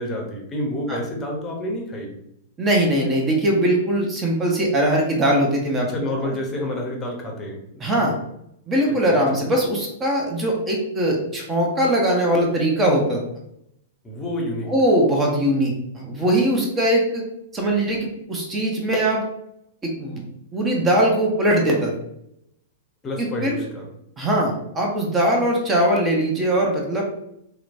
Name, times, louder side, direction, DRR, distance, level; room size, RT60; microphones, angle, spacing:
voice 1, 0.0-2.1 5.8-7.6 8.9-9.2 14.0-14.7 23.0-23.9, left 1 dB, 20° left, 1 dB, 0.7 m, -29 dB
voice 2, 2.6-5.9 7.8-8.1 8.7-13.2 14.7-17.2 17.5-19.2 19.8-20.2 20.5-21.9 23.2-23.6 24.2-27.1, right 1 dB, 20° right, 0 dB, 0.7 m, -21 dB
2.9 x 2.2 x 2.5 m, 0.78 s
figure-of-eight pair, 100°, 0 cm